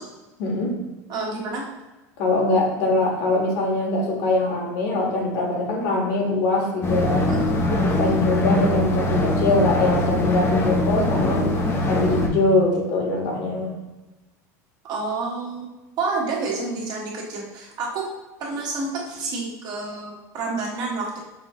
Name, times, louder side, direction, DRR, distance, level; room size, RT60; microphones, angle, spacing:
voice 1, 0.4-0.8 2.2-7.3 7.8-11.6 11.9-13.7, left 2 dB, 65° left, -1 dB, 1.4 m, -23 dB
voice 2, 1.1-1.7 7.3-7.8 14.8-15.7 16.0-18.1 18.4-21.2, right 3 dB, 45° right, -3 dB, 1.4 m, -29 dB
sound 1, 6.8-12.3, left 1 dB, 25° left, 0.7 m, -22 dB
6.0 x 2.8 x 2.9 m, 1.1 s
supercardioid pair, 110°, 9 cm